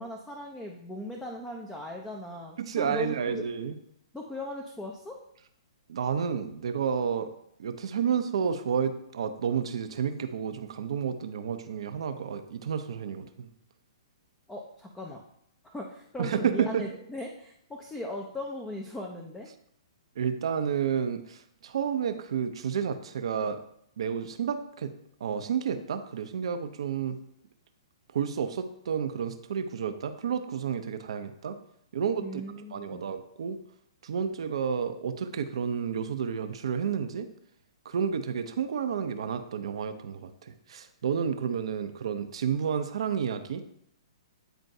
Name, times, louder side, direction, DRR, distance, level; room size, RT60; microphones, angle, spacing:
voice 1, 0.0-3.4 4.1-5.2 14.5-15.2 15.6-19.5 32.2-33.0, left 1 dB, 10° left, 0 dB, 0.6 m, -38 dB
voice 2, 2.6-3.8 5.9-7.3 7.6-13.5 16.2-16.8 20.2-23.6 24.0-24.9 25.2-27.2 28.1-31.6 31.9-32.4 32.7-33.6 34.0-37.3 37.8-43.6, right 7 dB, 70° right, 9 dB, 0.6 m, -30 dB
9.1 x 4.3 x 2.7 m, 0.72 s
hypercardioid pair, 130°, 3 cm